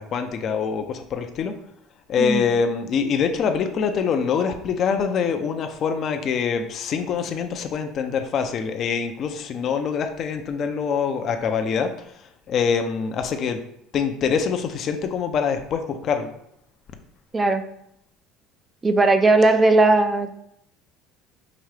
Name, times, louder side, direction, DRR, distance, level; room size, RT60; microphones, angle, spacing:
voice 1, 0.0-1.5 2.1-11.9 12.5-13.6 13.9-16.3, left 6 dB, 50° left, 6 dB, 0.5 m, -24 dB
voice 2, 2.2-2.5 17.3-17.6 18.8-20.4, right 2 dB, 20° right, 8 dB, 0.3 m, -18 dB
4.9 x 2.7 x 3.2 m, 0.73 s
supercardioid pair, 105°, 0 cm